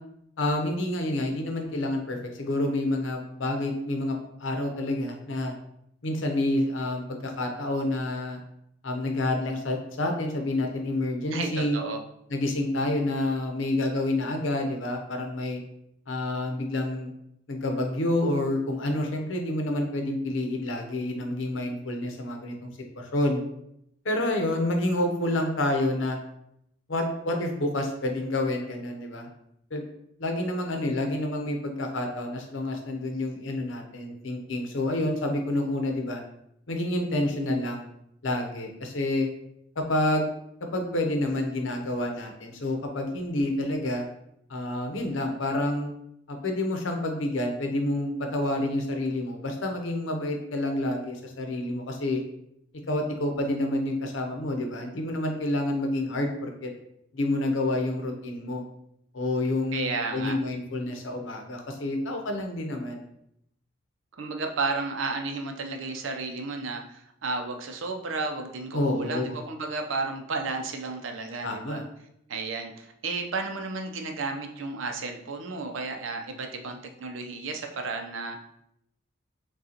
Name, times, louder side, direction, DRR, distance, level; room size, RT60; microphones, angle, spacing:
voice 1, 0.4-5.5 6.0-8.4 8.8-11.8 12.3-15.6 16.1-17.1 17.5-22.7 22.9-23.4 24.0-26.2 26.9-29.3 29.7-29.8 30.2-36.2 36.7-37.9 38.2-39.3 39.8-40.3 40.6-44.1 44.5-45.9 46.3-52.2 52.9-56.7 57.1-58.6 59.1-63.0 68.7-69.4 71.4-71.8, left 1 dB, 80° left, 3 dB, 0.8 m, -28 dB
voice 2, 11.3-12.0 59.7-60.4 64.2-71.8 72.3-78.4, right 3 dB, 85° right, 4 dB, 0.6 m, -32 dB
6.3 x 2.4 x 2.8 m, 0.76 s
head